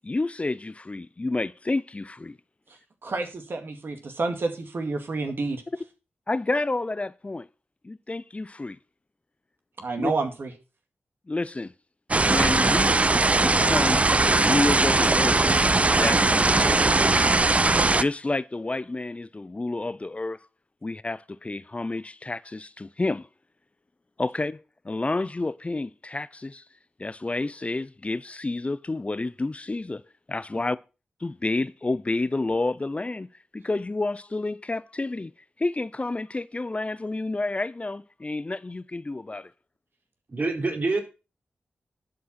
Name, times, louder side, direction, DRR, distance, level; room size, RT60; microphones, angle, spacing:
voice 1, 0.0-2.4 6.3-7.5 7.8-8.8 10.0-10.1 11.3-11.7 12.2-13.0 13.4-14.0 14.4-15.4 16.0-17.2 18.0-20.5 20.8-23.3 24.2-26.6 27.0-30.0 30.3-30.8 31.2-33.3 33.5-35.3 35.6-39.5, left 2 dB, 30° left, 0.5 m, -29 dB
voice 2, 3.0-5.6 9.8-10.5, right 3 dB, 65° right, 2.1 m, -29 dB
sound 1, 12.1-18.0, right 3 dB, 35° right, 0.5 m, -20 dB
voice 3, 40.3-41.0, right 3 dB, 50° right, 3.7 m, -26 dB
11.5 x 5.2 x 5.8 m
cardioid pair, 40°, 4 cm